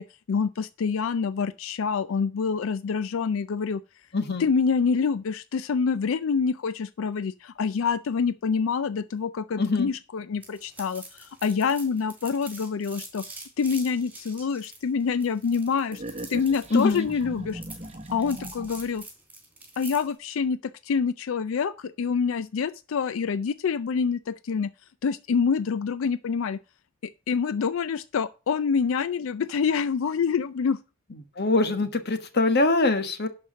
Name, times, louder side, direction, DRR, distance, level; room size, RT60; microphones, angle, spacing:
voice 1, 0.0-3.8 4.4-13.2 13.6-16.0 16.3-17.6 18.1-19.0 19.8-24.7 25.0-26.6 27.0-30.8, left 5 dB, 70° left, 0.4 m, -26 dB
voice 2, 4.1-4.5 9.6-9.9 16.7-17.1 31.4-33.3, left 3 dB, 50° left, 1.3 m, -23 dB
sound 1, 10.4-20.1, right 2 dB, 10° right, 3.6 m, -45 dB
sound 2, 15.9-19.0, right 1 dB, 30° right, 1.1 m, -39 dB
11.5 x 4.8 x 6.3 m
head